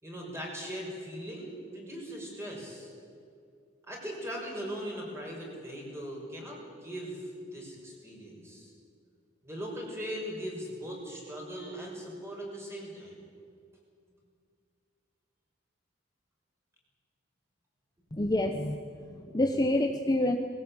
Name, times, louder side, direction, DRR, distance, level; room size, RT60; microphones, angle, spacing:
voice 1, 0.0-2.9 3.8-8.7 9.4-13.2, equal, 15° right, -1 dB, 5.8 m, -39 dB
voice 2, 18.1-18.8 19.1-20.4, left 1 dB, 20° left, 4 dB, 0.9 m, -27 dB
20.0 x 17.0 x 8.8 m, 2.3 s
head